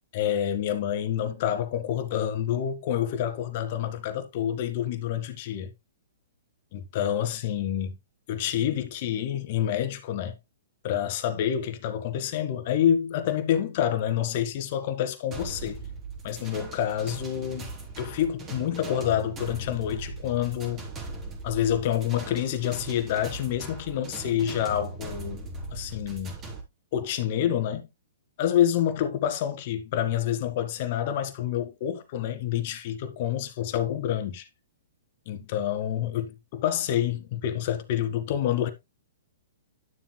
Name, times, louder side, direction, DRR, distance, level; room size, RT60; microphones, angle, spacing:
voice 1, 0.1-5.7 6.7-8.0 8.3-10.3 10.8-15.8 16.2-20.8 21.4-25.4 25.7-26.4 26.9-27.8 28.4-34.4 35.3-36.2 36.5-38.7, left 10 dB, 50° left, 1.9 m, -28 dB
sound 1, 15.3-26.6, right 3 dB, 20° right, 3.9 m, -39 dB
12.0 x 7.4 x 2.2 m
hypercardioid pair, 135°, 0 cm